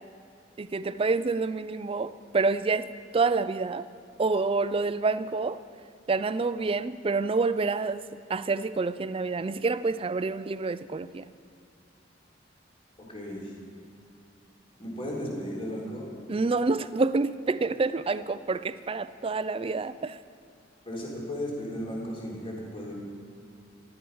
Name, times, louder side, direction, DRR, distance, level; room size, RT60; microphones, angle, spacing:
voice 1, 0.6-2.9 3.1-3.9 4.2-5.6 6.1-11.3 16.3-20.2, right 3 dB, 30° right, 14 dB, 0.4 m, -28 dB
voice 2, 13.1-13.5 14.8-16.2 20.8-22.9, equal, 30° left, -4 dB, 3.5 m, -35 dB
16.5 x 11.5 x 5.5 m, 2.6 s
head